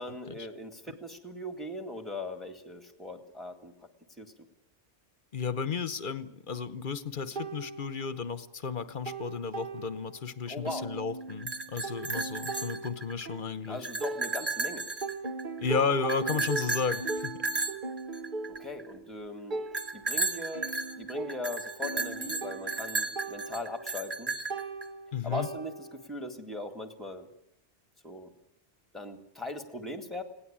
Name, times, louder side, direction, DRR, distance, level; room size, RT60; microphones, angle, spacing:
voice 1, 0.0-3.7 4.2-4.3 10.5-10.9 13.7-14.9 18.5-19.6 19.9-20.7 21.0-24.3 25.2-27.3 28.0-28.3 28.9-30.2, left 1 dB, ahead, 7 dB, 2.0 m, -39 dB
voice 2, 5.3-13.9 15.6-17.3 25.1-25.5, left 5 dB, 50° left, 14 dB, 1.1 m, -33 dB
sound 1, 7.4-8.5 8.8-10.3 10.7-14.7 15.0-26.1, right 3 dB, 45° right, 1.2 m, -39 dB
sound 2, 11.3-13.3 13.6-15.6 16.1-18.8 19.7-24.9, right 3 dB, 20° right, 1.2 m, -34 dB
20.5 x 17.5 x 8.8 m, 0.76 s
omnidirectional pair, 1.1 m